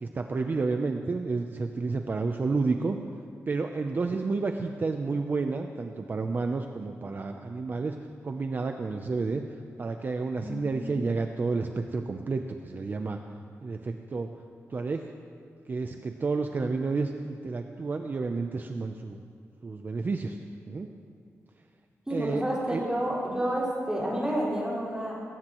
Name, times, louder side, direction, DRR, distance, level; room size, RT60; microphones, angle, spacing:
voice 1, 0.0-3.0 3.5-7.9 8.2-9.4 9.8-13.2 13.6-14.3 14.7-15.0 15.7-19.2 19.6-20.4 20.7-20.9 22.1-22.4 22.7-22.8, right 4 dB, 35° right, 5 dB, 0.6 m, -30 dB
voice 2, 10.4-10.9 22.1-25.1, right 1 dB, 15° right, -7 dB, 4.6 m, -30 dB
19.5 x 17.5 x 3.1 m, 2.2 s
wide cardioid pair, 150°, 5 cm